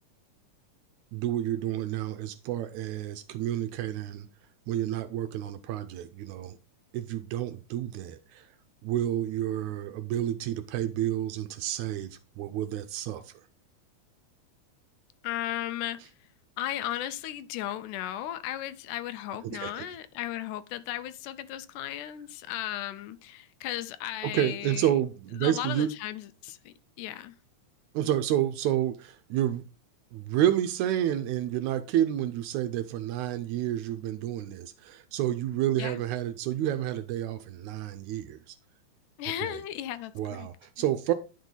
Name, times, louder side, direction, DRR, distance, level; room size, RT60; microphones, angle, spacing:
voice 1, 1.1-4.3 4.7-6.6 6.9-8.5 8.8-13.3 19.4-19.9 24.2-25.9 27.9-29.6 30.1-38.5 39.4-39.6 40.1-41.1, right 12 dB, 80° right, 1.8 m, -30 dB
voice 2, 15.2-16.0 16.6-24.9 25.3-27.4 35.8-36.0 39.2-40.5, left 12 dB, 80° left, 2.1 m, -35 dB
10.5 x 5.1 x 3.9 m
omnidirectional pair, 3.7 m